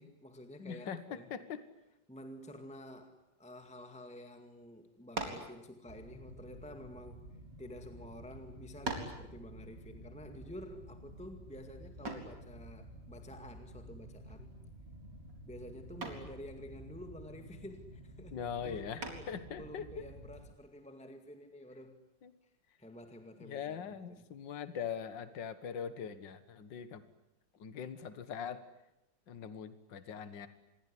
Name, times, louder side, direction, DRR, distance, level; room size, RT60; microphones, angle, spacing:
voice 1, 0.0-1.3 2.1-14.5 15.5-18.4 18.6-19.3 19.6-22.0 22.8-24.2, left 1 dB, 5° left, 6 dB, 2.0 m, -50 dB
voice 2, 0.6-1.6 18.3-20.1 22.2-22.3 23.4-27.0 27.6-28.6 29.3-30.5, left 7 dB, 70° left, 12 dB, 2.1 m, -42 dB
sound 1, 5.1-5.5 6.5-7.6 8.3-8.4 8.8-9.2 12.0-12.4 14.3-14.7 15.0-15.4 16.0-16.3 19.0-19.5, right 2 dB, 65° right, 4.8 m, -41 dB
sound 2, 5.9-20.4, right 1 dB, 30° right, 8.3 m, -52 dB
27.5 x 22.0 x 10.0 m, 0.90 s
omnidirectional pair, 2.0 m